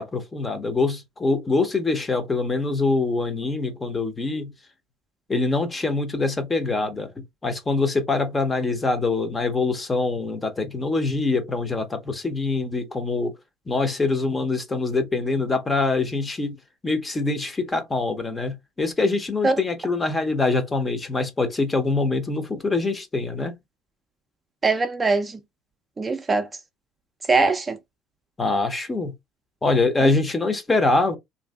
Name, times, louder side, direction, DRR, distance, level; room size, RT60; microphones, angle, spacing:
voice 1, 0.0-4.5 5.3-7.1 7.4-13.4 13.7-16.5 16.8-23.6 28.4-29.1 29.6-31.2, left 3 dB, 20° left, 0.7 m, -24 dB
voice 2, 24.6-25.4 26.0-26.5 27.3-27.8 30.0-30.1, right 3 dB, 25° right, 0.4 m, -21 dB
2.6 x 2.6 x 2.2 m
supercardioid pair, 90°, 0 cm